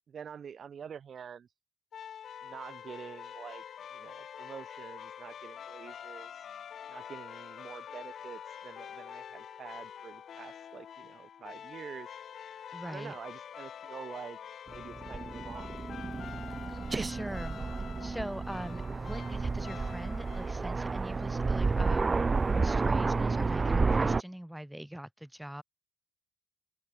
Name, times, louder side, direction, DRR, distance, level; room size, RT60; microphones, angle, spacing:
voice 1, 0.1-1.5 2.4-3.6 3.9-6.5 6.9-12.1 12.8-14.4 14.7-15.7, right 7 dB, 55° right, 1.0 m, -47 dB
sound 1, 1.9-20.8, left 8 dB, 60° left, 3.3 m, -46 dB
voice 2, 12.7-13.1 16.9-17.6 18.0-22.2 22.6-25.6, equal, 5° right, 2.4 m, -42 dB
Aircraft, 14.7-24.2, right 4 dB, 30° right, 1.1 m, -31 dB
cardioid pair, 90°, 0 cm